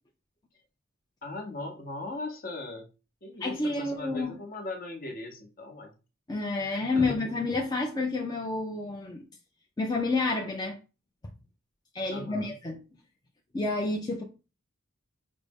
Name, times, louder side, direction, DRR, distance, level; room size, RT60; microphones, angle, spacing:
voice 1, 1.2-2.9 3.2-5.9 6.6-7.3 12.1-12.5, left 2 dB, 45° left, 0.7 m, -39 dB
voice 2, 3.4-4.4 6.3-9.2 9.8-10.8 11.9-12.8 13.5-14.2, left 3 dB, 20° left, 0.4 m, -29 dB
5.1 x 2.0 x 3.4 m
head